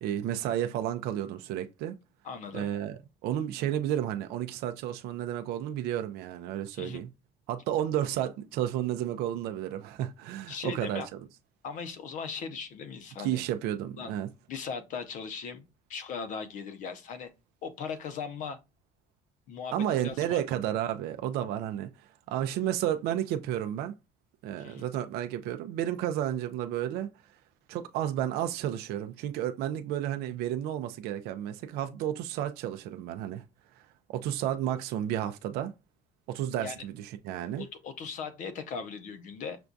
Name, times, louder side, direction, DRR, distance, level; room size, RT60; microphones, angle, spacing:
voice 1, 0.0-2.0 2.5-7.1 7.5-11.0 13.2-14.3 19.7-23.9 24.4-27.1 27.7-33.4 34.1-35.7 36.3-37.6, right 11 dB, 70° right, 0.4 m, -32 dB
voice 2, 2.2-2.7 6.7-7.0 10.5-11.1 11.6-13.4 14.0-14.1 14.5-17.3 17.6-18.6 19.5-20.4 24.6-24.8 36.6-36.8 37.6-39.6, left 6 dB, 50° left, 0.6 m, -38 dB
5.9 x 2.3 x 2.5 m
cardioid pair, 165°, 17 cm